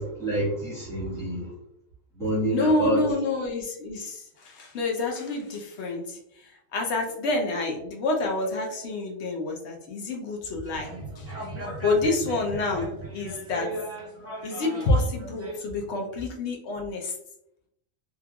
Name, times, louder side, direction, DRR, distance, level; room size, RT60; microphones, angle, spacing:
voice 1, 0.0-1.5 2.2-3.0, right 1 dB, ahead, -7 dB, 1.1 m, -27 dB
voice 2, 2.5-11.3 11.8-13.7 14.4-17.1, left 2 dB, 60° left, 0 dB, 0.9 m, -28 dB
sound 1, 10.6-15.6, right 2 dB, 20° right, 0.4 m, -37 dB
3.1 x 2.4 x 2.2 m, 0.74 s
omnidirectional pair, 1.4 m